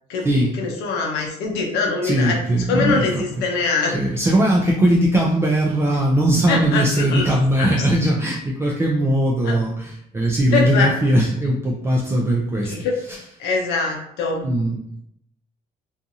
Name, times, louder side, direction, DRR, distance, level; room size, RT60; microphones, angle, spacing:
voice 1, 0.1-4.0 6.5-7.7 9.4-9.6 10.5-11.0 12.6-14.5, left 4 dB, 90° left, 0 dB, 0.5 m, -24 dB
voice 2, 2.0-3.0 3.9-12.7 14.4-14.8, right 1 dB, 15° right, -2 dB, 0.4 m, -19 dB
2.6 x 2.4 x 2.6 m, 0.72 s
cardioid pair, 110°, 17 cm